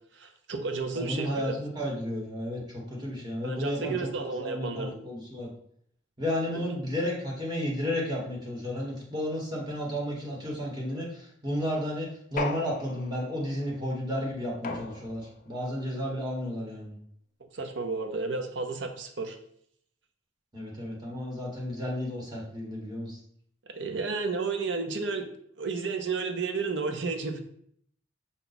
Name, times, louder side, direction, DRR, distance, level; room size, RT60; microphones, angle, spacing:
voice 1, 0.1-1.5 3.4-5.0 6.5-6.6 17.5-19.4 23.7-25.3 25.6-27.4, right 4 dB, 75° right, 5 dB, 0.7 m, -32 dB
voice 2, 0.9-2.6 2.9-5.5 6.2-16.9 20.5-23.2, equal, 25° right, -3 dB, 1.1 m, -32 dB
sound 1, 12.4-13.4 14.6-15.5, left 4 dB, 45° left, 0.4 m, -36 dB
5.6 x 2.3 x 4.0 m, 0.66 s
head